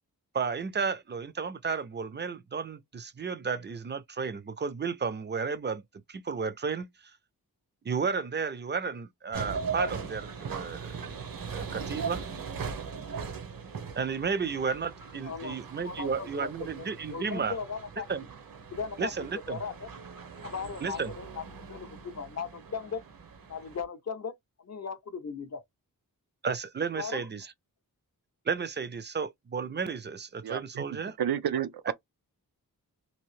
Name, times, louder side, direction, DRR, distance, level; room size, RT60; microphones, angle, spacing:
voice 1, 0.3-5.8 6.1-6.9 7.8-10.9 11.5-12.2 14.0-17.6 18.1-18.2 19.0-19.6 20.8-21.1 26.4-27.5 28.5-31.2 31.9-32.0, right 5 dB, 30° right, 0.4 m, -33 dB
sound 1, 9.3-23.8, right 5 dB, 70° right, 0.8 m, -40 dB
voice 2, 15.2-18.1 18.7-19.1 19.5-19.9 20.4-23.0 23.5-24.4 24.6-25.6 27.0-27.2, left 5 dB, 45° left, 0.5 m, -38 dB
voice 3, 30.4-30.8 31.2-31.9, right 9 dB, 90° right, 0.5 m, -30 dB
2.8 x 2.5 x 3.1 m
wide cardioid pair, 120°, 36 cm